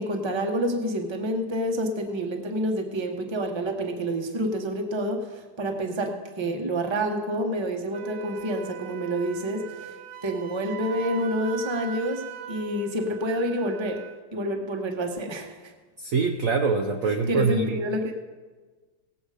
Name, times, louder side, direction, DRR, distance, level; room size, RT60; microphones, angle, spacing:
voice 1, 0.0-9.9 10.2-14.0 14.3-15.7 17.0-18.1, equal, 20° right, 3 dB, 0.9 m, -28 dB
Wind instrument woodwind instrument, 7.9-14.3, right 9 dB, 75° right, 1.4 m, -40 dB
voice 2, 16.0-17.7, right 5 dB, 60° right, 4 dB, 0.9 m, -24 dB
18.0 x 8.0 x 5.0 m, 1.4 s
omnidirectional pair, 2.0 m